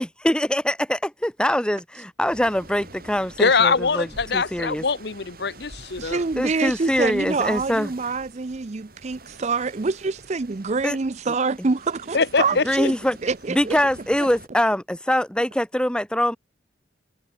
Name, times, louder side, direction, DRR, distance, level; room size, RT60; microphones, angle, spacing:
voice 1, 0.0-4.1 4.3-4.8 6.4-7.9 10.8-11.0 12.6-13.2 13.5-16.4, equal, 5° left, 1.4 m, -23 dB
sound 1, 2.3-14.5, right 2 dB, 55° right, 7.9 m, -46 dB
voice 2, 3.4-6.2 12.1-12.6, left 4 dB, 60° left, 1.0 m, -22 dB
voice 3, 6.0-12.9 13.2-13.8 14.2-14.3, right 4 dB, 35° right, 0.5 m, -26 dB
head